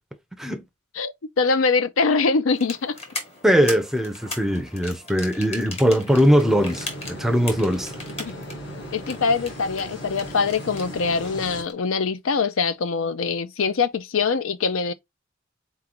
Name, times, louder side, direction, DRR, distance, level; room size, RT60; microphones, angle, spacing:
voice 1, 0.9-3.0 8.2-8.3 8.9-14.9, left 4 dB, 85° left, 0.5 m, -23 dB
sound 1, 2.5-11.7, left 2 dB, 30° left, 1.3 m, -39 dB
voice 2, 3.4-7.9, equal, ahead, 0.5 m, -20 dB
sound 2, 6.1-11.6, equal, 60° left, 1.5 m, -37 dB
4.1 x 3.8 x 2.8 m
head